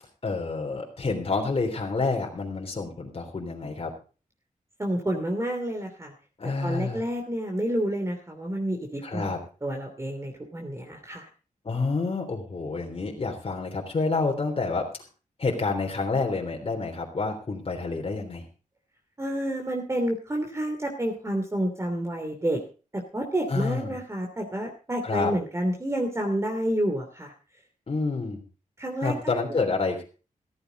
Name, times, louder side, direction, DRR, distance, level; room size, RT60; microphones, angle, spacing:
voice 1, 0.2-3.9 6.4-7.0 9.0-9.4 11.6-14.8 15.4-18.4 23.5-24.0 25.0-25.3 27.9-28.4 29.0-30.0, left 3 dB, 45° left, 1 dB, 3.4 m, -28 dB
voice 2, 4.8-6.1 6.6-9.3 9.6-11.2 19.2-22.6 22.9-27.3 28.8-29.1, right 1 dB, 20° right, 2 dB, 2.9 m, -29 dB
14.5 x 14.5 x 3.9 m, 0.36 s
wide cardioid pair, 105°, 14 cm